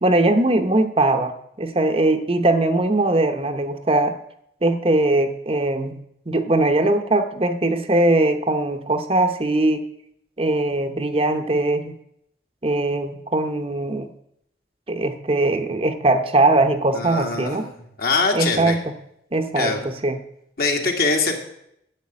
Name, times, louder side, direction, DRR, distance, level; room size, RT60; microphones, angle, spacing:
voice 1, 0.0-4.1 4.6-6.0 6.3-9.8 10.4-11.9 12.6-14.1 14.9-17.7 18.3-18.8 19.3-20.2, right 2 dB, 35° right, 6 dB, 0.9 m, -20 dB
voice 2, 16.9-18.8 19.6-19.9 20.6-21.4, left 3 dB, 55° left, 2 dB, 2.1 m, -23 dB
11.0 x 7.2 x 8.5 m, 0.75 s
head